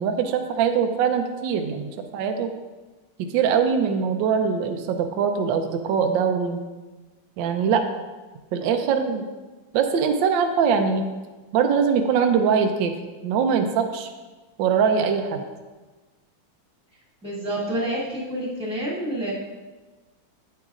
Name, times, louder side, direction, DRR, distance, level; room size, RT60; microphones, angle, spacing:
voice 1, 0.0-2.5 3.2-6.6 7.4-7.8 8.5-9.2 9.7-11.1 11.5-12.9 13.2-14.1 14.6-15.4, right 6 dB, 70° right, 5 dB, 1.3 m, -22 dB
voice 2, 17.2-19.3, right 1 dB, 5° right, -6 dB, 1.9 m, -28 dB
8.9 x 8.8 x 2.5 m, 1.2 s
omnidirectional pair, 2.3 m